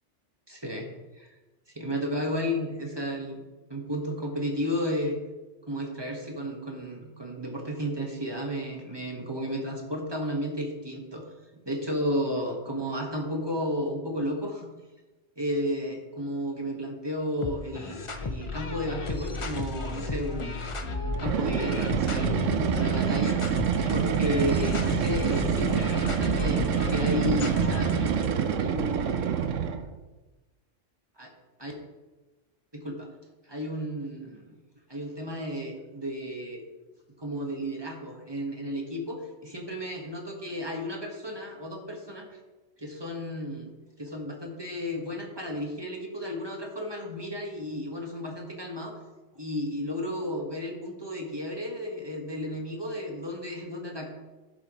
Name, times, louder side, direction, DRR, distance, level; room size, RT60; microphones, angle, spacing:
voice 1, 0.5-0.9 1.1-1.4 1.7-3.4 3.7-5.2 5.7-11.3 11.6-14.7 15.4-23.4 23.9-26.6 26.9-28.0 28.6-29.4 31.2-31.3 31.6-31.7 32.7-33.1 33.4-34.6 34.9-36.6 37.2-42.3 42.8-43.7 44.0-49.0 49.3-54.1, equal, 20° right, 1 dB, 1.5 m, -33 dB
sound 1, 17.4-28.3, left 3 dB, 35° left, 0.6 m, -34 dB
sound 2, 21.1-29.9, right 8 dB, 85° right, 1.1 m, -26 dB
16.0 x 7.2 x 3.1 m, 1.2 s
omnidirectional pair, 1.3 m